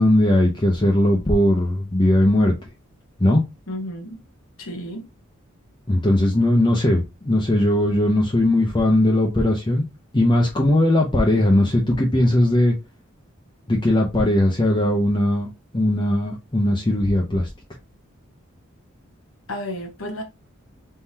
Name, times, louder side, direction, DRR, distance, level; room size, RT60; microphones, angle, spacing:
voice 1, 0.0-2.5 3.2-3.4 5.9-9.8 10.1-12.8 13.7-15.5 15.7-17.5, left 1 dB, 20° left, 0.7 m, -19 dB
voice 2, 3.7-4.2 4.6-5.1 19.5-20.2, left 1 dB, 80° left, 1.1 m, -32 dB
4.3 x 3.7 x 2.7 m
head